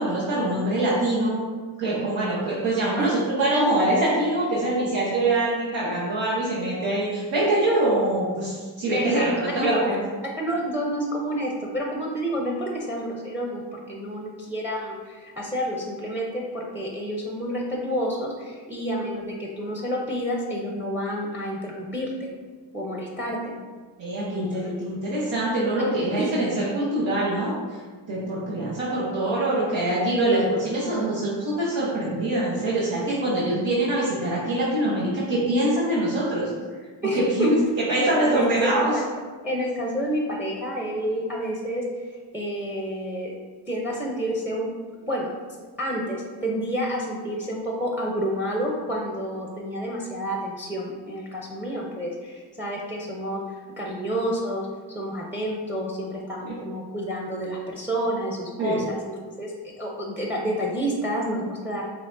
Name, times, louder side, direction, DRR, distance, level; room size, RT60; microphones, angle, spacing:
voice 1, 0.0-1.5 1.8-10.0 24.0-27.5 28.1-36.5 37.1-37.6 37.9-39.0 56.4-56.5 58.6-58.8, right 1 dB, 75° right, -7 dB, 1.1 m, -24 dB
voice 2, 8.9-9.9 10.4-22.3 22.7-23.6 24.3-24.8 26.2-26.3 37.0-37.7 38.3-38.9 39.4-42.1 42.3-43.3 43.7-44.7 45.0-45.3 45.8-61.9, equal, 5° right, -1 dB, 0.7 m, -29 dB
5.6 x 3.4 x 2.6 m, 1.5 s
cardioid pair, 70°, 45 cm